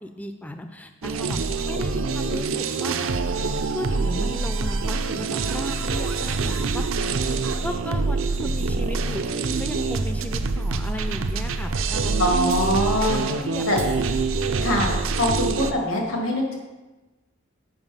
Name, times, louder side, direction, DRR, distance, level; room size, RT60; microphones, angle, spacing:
voice 1, 0.0-3.2 3.7-6.9 7.6-12.2 13.0-13.7 13.9-14.1, left 1 dB, 5° left, 7 dB, 0.3 m, -36 dB
sound 1, 1.0-15.7, right 4 dB, 75° right, 0.5 m, -25 dB
voice 2, 12.2-13.2 13.7-13.8 14.6-16.6, left 1 dB, 85° left, 0 dB, 1.9 m, -23 dB
7.0 x 5.3 x 5.5 m, 1.2 s
head